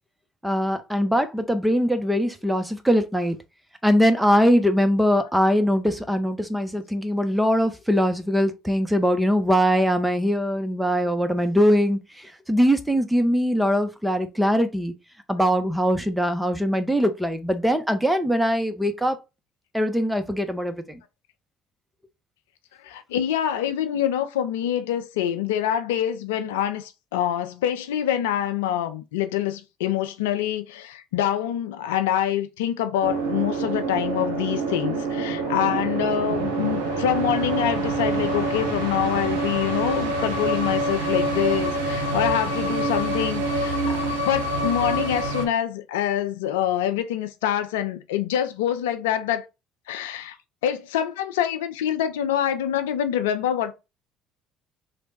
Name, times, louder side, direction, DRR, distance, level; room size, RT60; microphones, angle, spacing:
voice 1, 0.4-3.4 3.8-14.9 15.3-19.2 19.7-21.0, equal, 5° right, 0.7 m, -22 dB
voice 2, 22.8-49.4 49.9-50.4 50.6-53.8, left 10 dB, 75° left, 0.4 m, -26 dB
sound 1, 33.0-45.5, right 2 dB, 80° right, 0.6 m, -26 dB
3.2 x 2.1 x 3.9 m
figure-of-eight pair, 55°, 0 cm